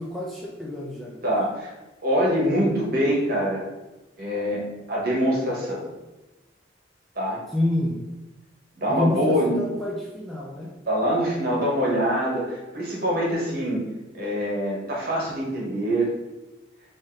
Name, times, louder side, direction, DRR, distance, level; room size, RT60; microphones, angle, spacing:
voice 1, 0.0-1.2 7.5-7.9 8.9-10.7, left 1 dB, ahead, -5 dB, 0.4 m, -28 dB
voice 2, 1.2-1.7 2.0-3.6 4.2-5.8 7.1-7.4 8.8-9.6 10.9-13.8 14.1-16.1, equal, 50° right, -4 dB, 1.2 m, -24 dB
3.6 x 2.7 x 3.7 m, 1.0 s
head